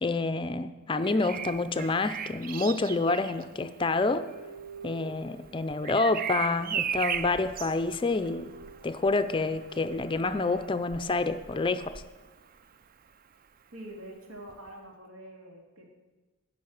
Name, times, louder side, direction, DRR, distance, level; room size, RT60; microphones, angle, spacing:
voice 1, 0.0-4.3 4.8-8.5 8.8-12.0, left 3 dB, 25° left, 11 dB, 0.4 m, -28 dB
Bird vocalization bird call bird song, 1.0-12.8 14.5-14.7, right 8 dB, 40° right, 0.4 m, -38 dB
sound 1, 3.1-6.7 7.3-7.4 7.7-9.9, right 4 dB, 70° right, 1.0 m, -50 dB
voice 2, 13.7-15.9, right 1 dB, 90° right, 0 dB, 2.7 m, -45 dB
11.5 x 6.2 x 8.7 m, 1.3 s
head